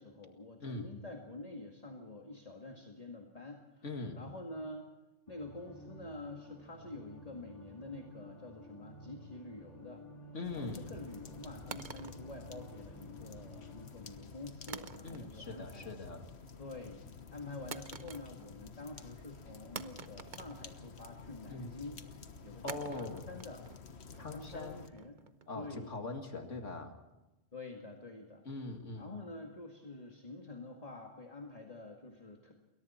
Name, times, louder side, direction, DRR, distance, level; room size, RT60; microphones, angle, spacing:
voice 1, 0.0-3.8 4.2-4.9 5.3-10.0 10.5-15.9 16.6-17.0 17.3-23.7 24.1-25.2 25.5-25.9 27.5-28.4 29.0-32.5, left 2 dB, 30° left, 2 dB, 2.1 m, -47 dB
voice 2, 0.6-0.9 3.8-4.2 10.3-10.9 15.0-16.3 21.5-21.7 22.6-23.2 24.2-24.8 25.5-26.9 28.4-29.1, left 3 dB, 80° left, 4 dB, 2.6 m, -42 dB
sound 1, 5.3-14.0, left 1 dB, 15° left, 5.5 m, -53 dB
sound 2, 10.4-24.9, left 5 dB, 60° left, 1.5 m, -51 dB
sound 3, 11.7-13.1 14.7-15.5 15.8-16.3 17.7-18.7 18.9-19.0 19.8-21.3 22.7-25.7, right 5 dB, 45° right, 1.0 m, -48 dB
29.0 x 22.0 x 4.4 m, 1.0 s
omnidirectional pair, 1.2 m